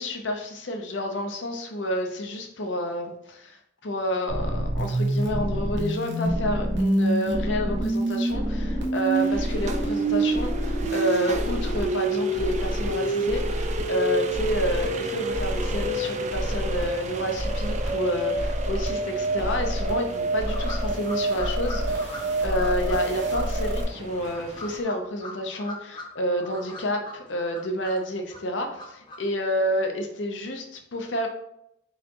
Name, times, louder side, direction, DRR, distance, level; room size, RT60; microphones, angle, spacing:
voice 1, 0.0-31.3, equal, 85° left, 4 dB, 0.7 m, -29 dB
sound 1, 4.3-23.8, right 1 dB, 75° right, 1.0 m, -27 dB
sound 2, 9.1-24.8, right 3 dB, 40° right, 0.4 m, -39 dB
sound 3, 20.5-23.0 23.3-23.4 24.1-26.1 26.3-28.0 28.3-29.2, left 2 dB, 25° left, 0.7 m, -40 dB
4.1 x 3.7 x 2.9 m, 0.79 s
head